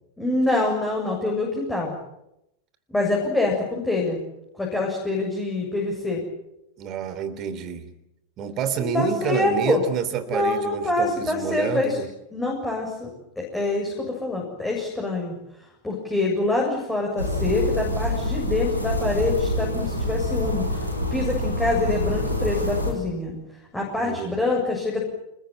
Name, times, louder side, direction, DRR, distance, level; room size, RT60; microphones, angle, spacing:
voice 1, 0.2-1.9 2.9-4.2 4.6-6.2 8.9-9.8 10.3-12.0 12.3-13.1 13.4-15.4 15.8-23.3 23.7-25.2, left 2 dB, 10° left, -2 dB, 7.5 m, -25 dB
voice 2, 6.8-7.9 8.4-12.1 24.0-24.4, right 7 dB, 35° right, 12 dB, 3.3 m, -28 dB
sound 1, 17.2-22.9, left 1 dB, 90° left, 5.6 m, -26 dB
27.5 x 21.5 x 9.2 m, 0.85 s
figure-of-eight pair, 90°, 0 cm